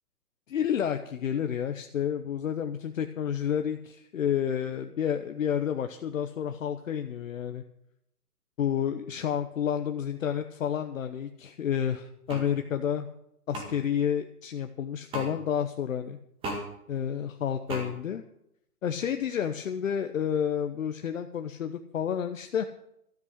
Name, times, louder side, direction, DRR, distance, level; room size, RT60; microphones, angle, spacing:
voice 1, 0.5-7.6 8.6-13.1 13.5-16.2 16.9-18.2 18.8-22.6, left 8 dB, 55° left, 7 dB, 1.0 m, -30 dB
sound 1, 12.3-12.5 13.5-13.7 15.1-15.3 16.4-16.6 17.7-17.9, right 1 dB, 10° right, 1.8 m, -34 dB
13.0 x 8.5 x 7.9 m, 0.79 s
hypercardioid pair, 150°, 46 cm